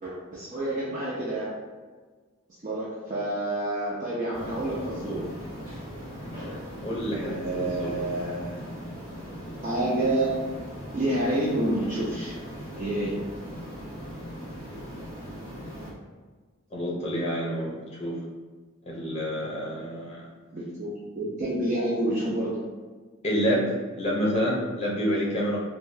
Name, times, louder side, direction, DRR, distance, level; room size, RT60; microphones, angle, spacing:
voice 1, 0.0-1.5 2.6-5.3 7.1-8.6 9.6-10.5 10.9-12.4 12.8-13.2 20.5-22.6, right 1 dB, 35° right, -8 dB, 0.5 m, -28 dB
sound 1, 4.3-15.9, equal, 10° right, 1.4 m, -39 dB
voice 2, 6.8-8.0 16.7-18.2 18.9-20.3 23.2-25.6, equal, 30° left, -3 dB, 0.6 m, -28 dB
3.5 x 2.2 x 2.7 m, 1.4 s
head